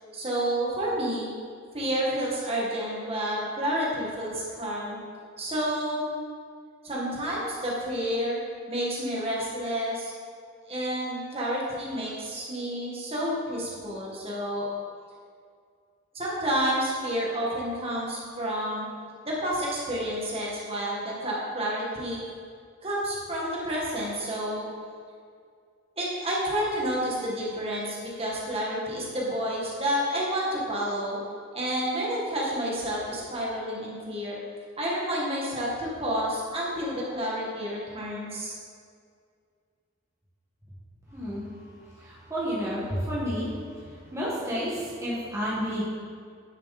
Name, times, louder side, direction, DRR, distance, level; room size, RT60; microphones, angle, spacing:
voice 1, 0.1-1.3 1.7-5.0 5.4-6.1 6.8-8.4 8.7-10.1 10.7-14.7 16.1-18.9 19.2-22.3 22.8-24.7 26.0-31.2 31.5-34.4 34.8-38.6, equal, 30° right, -5 dB, 1.9 m, -30 dB
voice 2, 41.1-41.4 42.0-43.5 44.1-45.8, equal, 15° right, -7 dB, 1.8 m, -30 dB
10.0 x 7.2 x 4.3 m, 2.2 s
head